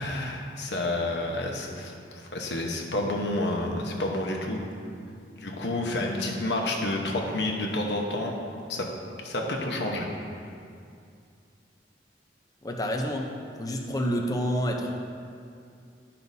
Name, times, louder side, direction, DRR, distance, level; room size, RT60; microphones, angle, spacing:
voice 1, 0.0-4.6 5.4-8.3 8.7-8.9 9.2-10.1, left 1 dB, 70° left, 0 dB, 1.0 m, -29 dB
voice 2, 12.6-14.9, equal, 20° left, 1 dB, 0.7 m, -29 dB
12.5 x 5.7 x 2.7 m, 2.4 s
head